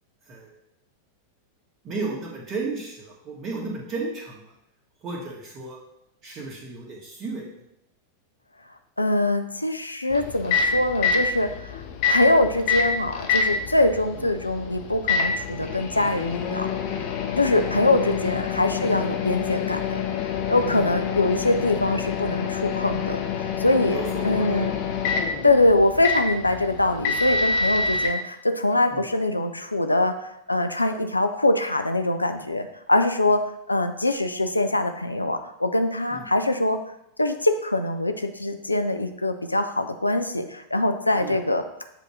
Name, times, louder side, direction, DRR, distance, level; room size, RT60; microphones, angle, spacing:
voice 1, 1.8-4.5 5.0-5.8 6.2-7.5 14.2-14.3 18.2-18.4 20.7-20.9 23.9-24.7 28.9-29.1 36.1-36.3 41.2-41.4, right 3 dB, 30° right, -2 dB, 1.6 m, -34 dB
voice 2, 9.0-11.8 12.1-16.7 17.4-20.0 20.5-23.2 23.6-24.7 25.4-33.4 33.7-36.8 37.2-41.6, left 2 dB, 85° left, 7 dB, 0.4 m, -23 dB
Microwave oven, 10.1-28.1, left 5 dB, 45° left, 0.8 m, -27 dB
7.5 x 2.7 x 4.9 m, 0.80 s
figure-of-eight pair, 90°, 0 cm